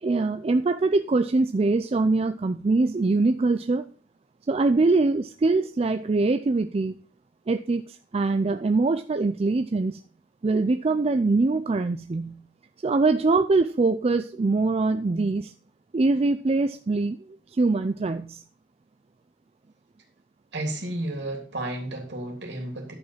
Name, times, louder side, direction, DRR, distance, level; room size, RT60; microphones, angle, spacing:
voice 1, 0.0-3.9 4.5-7.0 7.5-10.0 10.4-12.4 12.8-15.5 15.9-17.2 17.5-18.4, right 3 dB, 30° right, 9 dB, 0.4 m, -23 dB
voice 2, 20.5-22.9, right 1 dB, 60° right, 1 dB, 3.1 m, -32 dB
11.0 x 5.3 x 5.6 m, 0.42 s
head